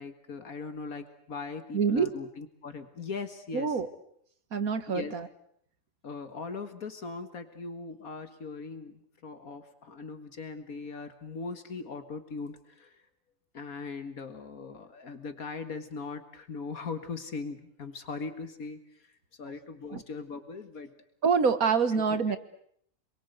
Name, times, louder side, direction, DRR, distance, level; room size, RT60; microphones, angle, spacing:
voice 1, 0.0-3.7 4.9-5.1 6.0-13.0 13.5-21.0 22.1-22.2, left 4 dB, 75° left, 9 dB, 2.1 m, -40 dB
voice 2, 1.7-2.2 3.5-3.9 4.5-5.3 19.9-20.0 21.2-22.4, right 5 dB, 75° right, 11 dB, 2.0 m, -26 dB
28.0 x 22.5 x 8.2 m, 0.68 s
omnidirectional pair, 1.5 m